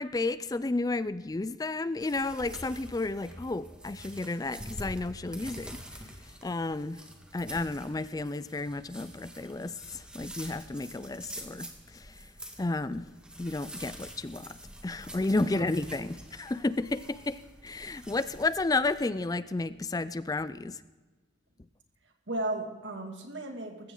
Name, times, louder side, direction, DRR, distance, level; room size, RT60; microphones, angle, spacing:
voice 1, 0.0-5.8 6.4-7.0 7.3-12.3 12.6-13.1 13.4-20.8, left 2 dB, 20° left, 15 dB, 0.4 m, -32 dB
sound 1, 2.0-19.0, equal, 5° right, 1.7 m, -46 dB
voice 2, 22.3-23.9, right 2 dB, 65° right, 3 dB, 2.5 m, -35 dB
19.5 x 15.5 x 3.9 m, 1.2 s
head